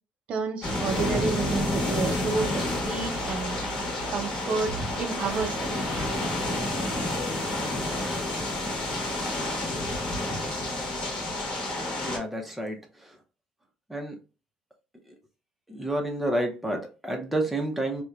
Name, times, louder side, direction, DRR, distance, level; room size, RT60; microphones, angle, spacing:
voice 1, 0.3-3.6 4.1-5.7, right 4 dB, 50° right, 0.5 m, -31 dB
sound 1, 0.6-12.2, left 1 dB, 35° left, 1.1 m, -29 dB
voice 2, 12.0-12.8 13.9-14.1 15.7-18.0, right 1 dB, 5° right, 0.6 m, -29 dB
2.8 x 2.1 x 2.3 m
cardioid pair, 145°, 3 cm